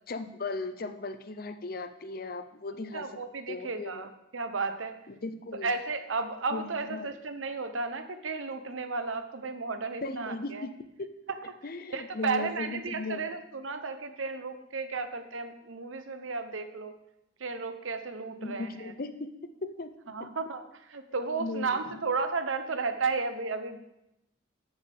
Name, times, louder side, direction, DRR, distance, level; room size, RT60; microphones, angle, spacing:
voice 1, 0.1-3.1 3.5-4.1 5.1-5.7 6.5-7.1 10.0-10.7 11.0-11.1 11.6-13.2 18.4-19.3 19.6-20.3 21.4-22.0, left 3 dB, 50° left, 10 dB, 0.6 m, -37 dB
voice 2, 2.9-5.0 5.6-10.7 11.4-11.5 11.9-16.9 17.4-18.9 20.1-23.8, right 4 dB, 85° right, 9 dB, 0.9 m, -33 dB
13.0 x 7.2 x 3.6 m, 0.88 s
head